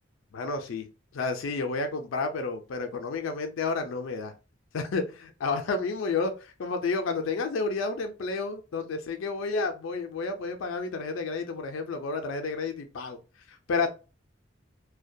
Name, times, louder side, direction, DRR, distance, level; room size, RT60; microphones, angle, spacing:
voice 1, 0.3-0.9 1.1-4.3 4.7-13.2 13.5-13.9, left 4 dB, 70° left, 6 dB, 0.4 m, -31 dB
2.2 x 2.1 x 2.6 m, 0.32 s
head